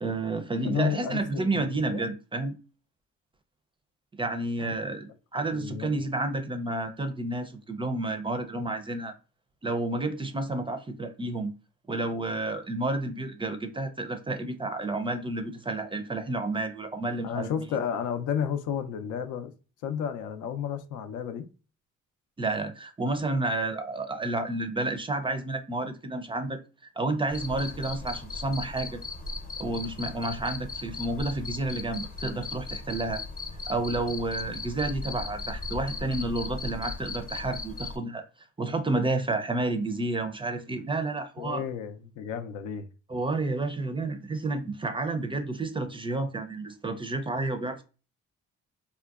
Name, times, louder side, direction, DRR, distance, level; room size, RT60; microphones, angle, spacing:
voice 1, 0.0-2.6 4.1-9.1 9.6-11.5 11.9-17.5 22.4-26.6 27.0-29.0 29.6-33.2 33.7-38.2 38.6-41.6 43.1-47.8, right 2 dB, 15° right, 0.4 m, -30 dB
voice 2, 0.6-2.0 4.6-4.7 5.4-6.0 17.2-19.5 19.8-21.5 41.4-42.9, left 8 dB, 85° left, 0.5 m, -32 dB
Cricket, 27.3-38.0, left 3 dB, 30° left, 0.7 m, -37 dB
3.6 x 2.2 x 2.3 m
cardioid pair, 90°, 30 cm